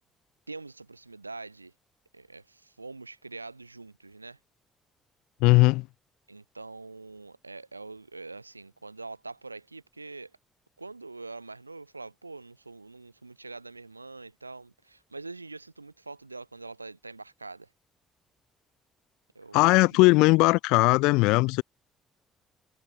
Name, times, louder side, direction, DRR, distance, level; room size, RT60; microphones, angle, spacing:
voice 1, 0.5-1.7 2.1-4.4 6.3-10.3 10.8-17.7 19.3-20.0, right 3 dB, 90° right, 3.9 m, -44 dB
voice 2, 5.4-5.9 19.5-21.6, left 24 dB, 65° left, 0.5 m, -19 dB
figure-of-eight pair, 45°, 0 cm